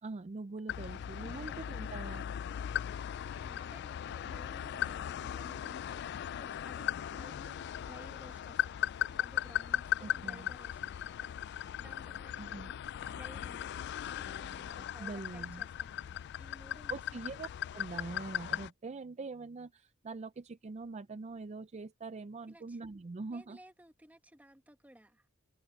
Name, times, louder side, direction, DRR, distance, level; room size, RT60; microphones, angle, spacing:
voice 1, 0.0-2.3 10.0-10.5 12.4-12.7 15.0-15.6 16.9-17.5 17.7-23.6, right 3 dB, 35° right, 0.4 m, -43 dB
sound 1, 0.7-18.7, left 11 dB, 55° left, 0.3 m, -38 dB
voice 2, 1.3-1.7 3.3-17.2 22.5-22.8 23.3-25.3, right 1 dB, 10° right, 1.2 m, -57 dB
head